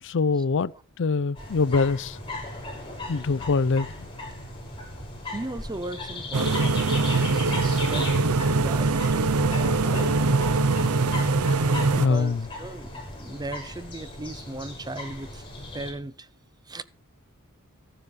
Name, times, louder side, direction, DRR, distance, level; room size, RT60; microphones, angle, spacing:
voice 1, 0.0-0.7 1.0-2.2 3.1-4.1 12.0-12.5, left 4 dB, 60° left, 0.5 m, -24 dB
sound 1, 1.4-15.9, left 2 dB, 25° left, 6.4 m, -37 dB
voice 2, 5.2-7.4 7.8-8.1 8.5-10.0 11.9-15.4 15.7-16.3 16.7-16.8, right 2 dB, 20° right, 0.7 m, -37 dB
sound 2, 6.3-12.1, right 3 dB, 75° right, 0.7 m, -23 dB
14.0 x 9.9 x 5.3 m
head